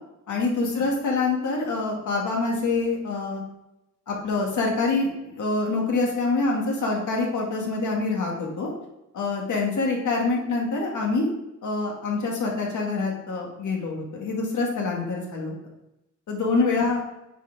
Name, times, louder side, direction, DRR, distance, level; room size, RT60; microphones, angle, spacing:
voice 1, 0.3-3.4 4.1-8.7 9.1-11.3 11.6-15.5 16.3-17.0, left 3 dB, 70° left, -1 dB, 2.1 m, -25 dB
8.9 x 4.5 x 3.6 m, 0.91 s
wide cardioid pair, 135°, 31 cm